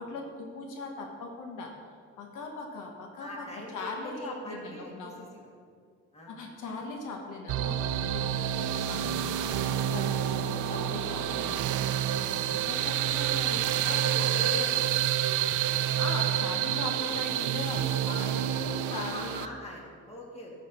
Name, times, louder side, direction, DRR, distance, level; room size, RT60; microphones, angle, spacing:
voice 1, 0.0-1.7 2.2-3.5 3.7-5.3 6.3-11.8 12.3-14.3 14.6-14.7 15.7-19.4, left 3 dB, 85° left, 2 dB, 1.2 m, -39 dB
voice 2, 3.2-5.5 6.1-6.4 13.8-14.8 18.9-20.5, left 1 dB, 20° left, -2 dB, 2.2 m, -41 dB
sound 1, 7.5-19.5, right 11 dB, 75° right, 0.5 m, -28 dB
11.0 x 6.6 x 4.2 m, 2.1 s
cardioid pair, 90°, 30 cm